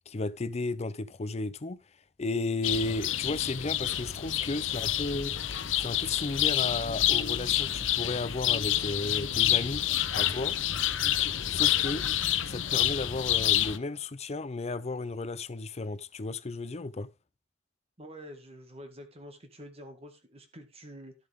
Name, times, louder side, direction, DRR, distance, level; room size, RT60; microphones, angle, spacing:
voice 1, 0.1-1.8 2.2-5.4 5.8-9.8 10.2-10.6 11.5-12.1 12.5-17.1, left 3 dB, 35° left, 0.6 m, -34 dB
sound 1, 2.6-13.8, left 12 dB, 85° left, 0.8 m, -28 dB
voice 2, 18.0-21.1, equal, 30° right, 2.0 m, -47 dB
12.0 x 7.3 x 3.6 m
head